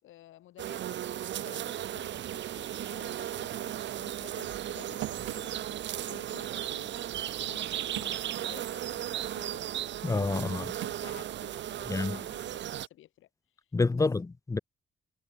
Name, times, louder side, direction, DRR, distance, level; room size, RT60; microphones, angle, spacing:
voice 1, 0.0-1.0 1.4-9.6 10.3-13.3 13.9-14.1, left 14 dB, 80° left, 4.7 m, -53 dB
sound 1, 0.6-12.9, right 11 dB, 65° right, 1.0 m, -36 dB
sound 2, 2.9-9.1 9.5-12.1, right 15 dB, 85° right, 1.8 m, -47 dB
voice 2, 10.0-10.7 11.9-12.2 13.7-14.6, left 3 dB, 15° left, 0.6 m, -28 dB
cardioid pair, 90°, 20 cm